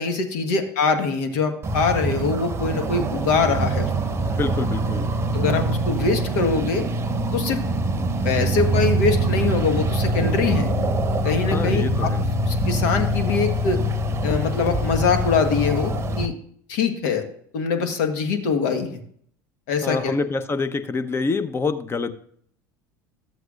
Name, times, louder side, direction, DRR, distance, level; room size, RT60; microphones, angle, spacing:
voice 1, 0.0-3.9 5.3-6.9 7.3-7.6 8.2-10.7 11.2-12.1 12.4-13.8 14.2-16.3 16.7-17.2 17.5-19.0 19.7-20.1, left 5 dB, 70° left, 7 dB, 1.4 m, -23 dB
sound 1, 1.6-16.3, right 1 dB, 25° right, 0.8 m, -24 dB
voice 2, 4.3-5.1 11.5-12.2 19.8-22.1, left 4 dB, 25° left, 11 dB, 0.7 m, -26 dB
13.0 x 7.8 x 2.4 m, 0.63 s
hypercardioid pair, 75°, 10 cm